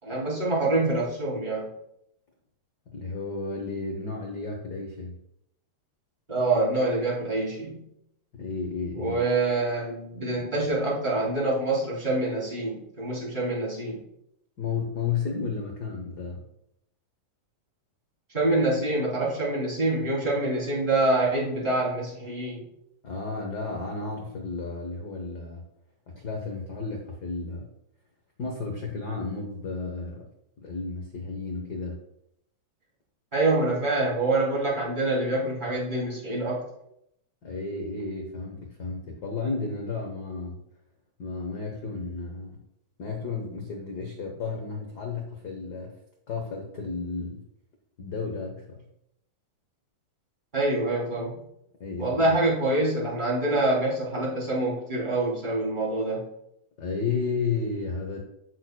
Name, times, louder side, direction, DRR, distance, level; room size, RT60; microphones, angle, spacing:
voice 1, 0.0-1.7 6.3-7.8 9.0-14.0 18.3-22.6 33.3-36.6 50.5-51.4 52.0-56.2, right 2 dB, 15° right, -6 dB, 3.0 m, -26 dB
voice 2, 2.9-5.2 8.3-9.2 14.6-16.4 23.0-25.6 26.1-27.7 28.4-30.3 30.6-32.0 37.4-40.6 41.2-42.6 43.0-45.9 46.3-47.4 48.0-48.8 51.8-52.4 56.8-58.2, left 4 dB, 85° left, 2 dB, 0.8 m, -33 dB
14.0 x 6.4 x 2.2 m, 0.78 s
omnidirectional pair, 3.5 m